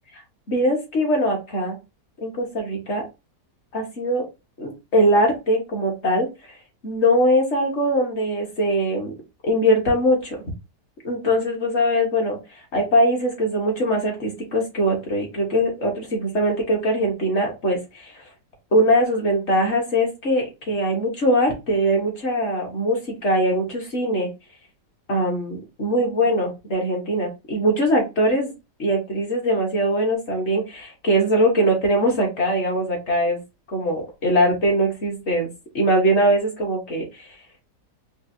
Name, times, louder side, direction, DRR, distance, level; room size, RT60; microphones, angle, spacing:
voice 1, 0.5-1.8 2.2-3.0 3.7-4.2 4.6-6.3 6.8-9.1 9.4-10.4 11.0-12.4 12.7-18.2 18.7-24.3 25.1-28.5 28.8-33.4 33.7-35.5 35.7-37.3, equal, 45° left, 0 dB, 1.4 m, -21 dB
4.6 x 2.6 x 2.7 m, 0.25 s
omnidirectional pair, 1.8 m